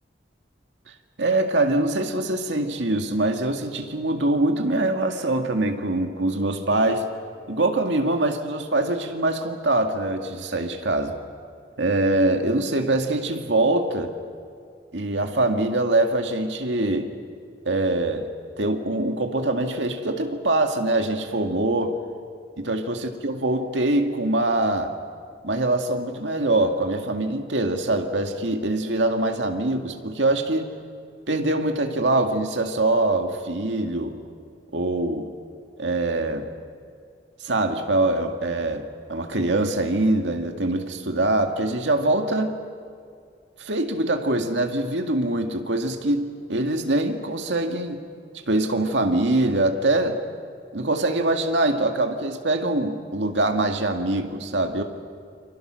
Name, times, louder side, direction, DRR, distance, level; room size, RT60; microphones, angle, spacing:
voice 1, 1.2-7.1 7.5-11.2 11.8-14.1 14.9-17.1 17.7-18.3 18.6-22.0 22.6-24.9 25.4-30.7 31.3-34.2 34.7-35.3 35.8-36.5 37.4-42.6 43.6-48.0 48.5-50.2 50.7-54.8, right 2 dB, 90° right, 4 dB, 2.0 m, -23 dB
29.0 x 25.0 x 6.4 m, 2.3 s
head